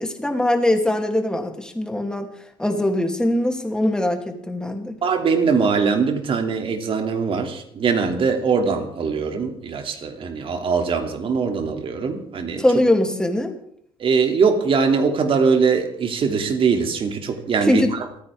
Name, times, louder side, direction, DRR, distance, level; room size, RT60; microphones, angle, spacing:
voice 1, 0.0-2.3 2.6-4.9 12.6-13.5 17.6-17.9, left 1 dB, 5° left, 3 dB, 2.9 m, -21 dB
voice 2, 5.0-12.6 14.0-17.8, right 5 dB, 45° right, 5 dB, 2.7 m, -21 dB
29.0 x 9.7 x 3.6 m, 0.70 s
hypercardioid pair, 70°, 13 cm